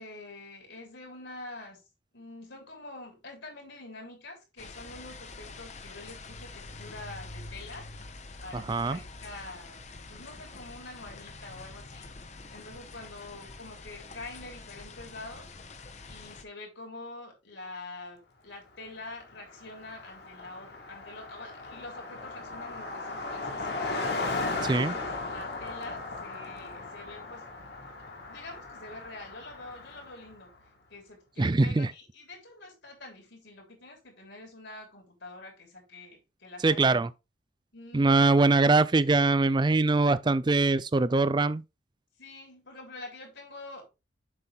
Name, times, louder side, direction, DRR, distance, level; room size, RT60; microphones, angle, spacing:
voice 1, 0.0-1.8 2.1-7.9 8.4-12.1 12.5-15.6 16.1-24.0 24.5-27.5 28.1-30.5 30.9-36.8 37.7-38.3 42.2-43.9, left 2 dB, 70° left, 3.5 m, -46 dB
sound 1, 4.6-16.4, left 3 dB, 35° left, 0.8 m, -46 dB
voice 2, 8.5-9.0 24.6-24.9 31.4-31.9 36.6-37.1 37.9-41.6, right 3 dB, 25° right, 0.4 m, -23 dB
Car passing by, 19.0-19.1 19.3-30.3, left 3 dB, 55° left, 1.9 m, -37 dB
7.7 x 6.0 x 3.5 m
head